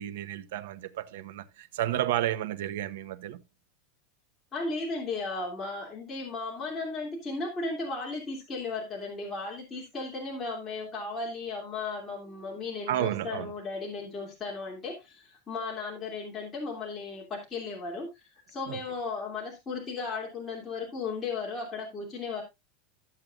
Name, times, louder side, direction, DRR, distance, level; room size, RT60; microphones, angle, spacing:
voice 1, 0.0-3.4 12.9-13.5 18.7-18.8, right 12 dB, 80° right, 1.1 m, -32 dB
voice 2, 4.5-22.4, left 3 dB, 15° left, 2.9 m, -35 dB
14.0 x 7.7 x 2.5 m
supercardioid pair, 170°, 0 cm